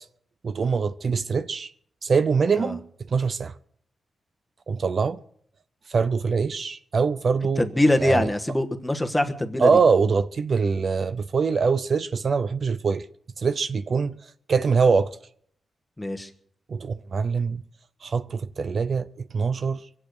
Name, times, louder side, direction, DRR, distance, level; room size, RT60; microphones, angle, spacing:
voice 1, 0.4-1.7 2.0-3.5 4.7-5.2 5.9-7.7 8.0-8.3 9.6-13.1 13.4-14.1 14.5-15.2 16.7-17.6 18.0-19.1 19.3-19.9, right 5 dB, 45° right, 0.5 m, -23 dB
voice 2, 7.6-9.7 16.0-16.3, left 1 dB, 10° left, 1.4 m, -23 dB
24.0 x 8.5 x 6.4 m
wide cardioid pair, 125°, 0 cm